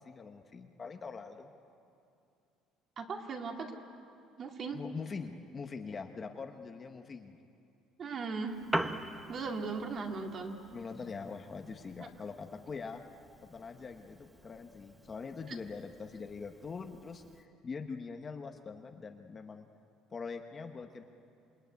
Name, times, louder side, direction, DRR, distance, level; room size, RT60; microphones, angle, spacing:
voice 1, 0.0-1.5 4.7-7.4 10.7-13.0 13.4-19.7 20.1-21.0, left 5 dB, 20° left, 5 dB, 1.0 m, -43 dB
voice 2, 3.0-3.7 4.4-4.8 8.0-8.6 9.3-10.6, right 4 dB, 35° right, 3 dB, 2.2 m, -37 dB
Piano, 8.5-17.5, right 1 dB, 5° right, 0.8 m, -43 dB
28.0 x 21.5 x 9.4 m, 2.5 s
cardioid pair, 170°, 0 cm